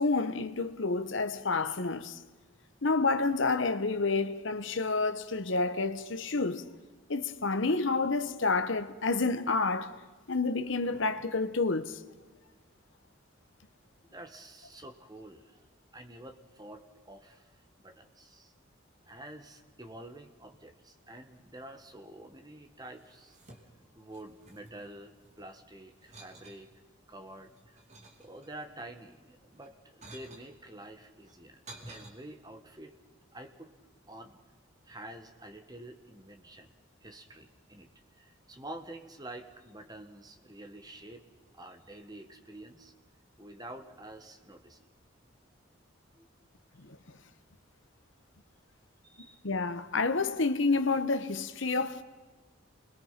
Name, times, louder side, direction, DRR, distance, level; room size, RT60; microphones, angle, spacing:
voice 1, 0.0-2.2 2.8-6.7 7.1-9.9 10.3-12.0 46.8-47.0 49.4-52.0, left 3 dB, 65° left, 1.1 m, -29 dB
voice 2, 14.1-15.7 15.9-18.5 19.1-23.4 24.0-26.7 27.1-27.8 28.2-31.6 31.9-33.0 33.3-33.7 34.1-34.4 34.9-36.7 37.0-37.9 38.2-41.2 41.5-42.9 43.4-44.9 46.1-46.3 49.0-49.4, right 1 dB, 20° right, 1.7 m, -48 dB
sound 1, 22.9-23.9 24.1-25.5 26.0-26.6 27.2-28.7 29.5-30.5 31.2-32.1, right 2 dB, 35° right, 3.1 m, -52 dB
28.5 x 21.5 x 5.9 m
head